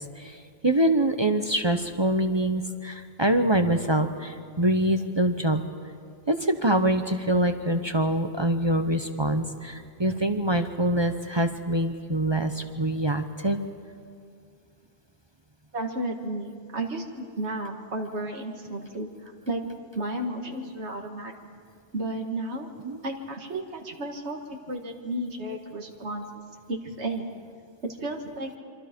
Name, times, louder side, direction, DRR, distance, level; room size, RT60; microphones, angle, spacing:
voice 1, 0.6-5.6 6.3-13.6 22.8-22.9, right 1 dB, 25° right, 7 dB, 0.9 m, -24 dB
voice 2, 15.7-19.6 19.9-21.3 21.9-22.7 23.0-26.4 26.7-27.3 27.8-28.5, right 1 dB, 90° right, 2 dB, 2.1 m, -33 dB
27.0 x 25.0 x 5.3 m, 2.3 s
omnidirectional pair, 1.1 m